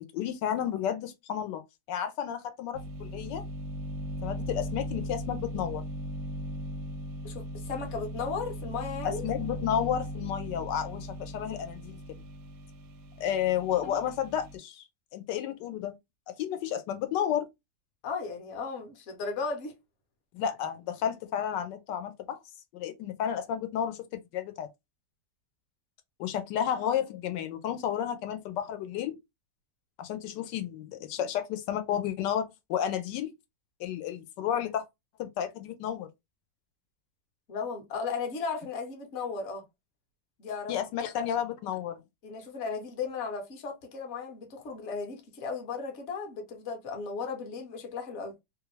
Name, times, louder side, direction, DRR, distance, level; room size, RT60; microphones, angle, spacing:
voice 1, 0.1-1.6 1.9-3.4 4.2-5.8 9.0-12.0 13.2-14.8 15.1-15.9 16.4-17.4 20.3-22.4 22.7-24.7 26.2-29.2 30.0-33.3 33.8-34.9 35.2-36.1 40.7-42.0, left 9 dB, 85° left, 1.2 m, -32 dB
sound 1, 2.7-14.6, equal, 70° right, 0.8 m, -38 dB
voice 2, 7.2-9.2 13.8-14.0 18.0-19.7 37.5-39.6 40.4-40.7 41.2-41.3 42.2-48.3, left 5 dB, 50° left, 1.0 m, -35 dB
3.0 x 2.4 x 3.0 m
omnidirectional pair, 1.9 m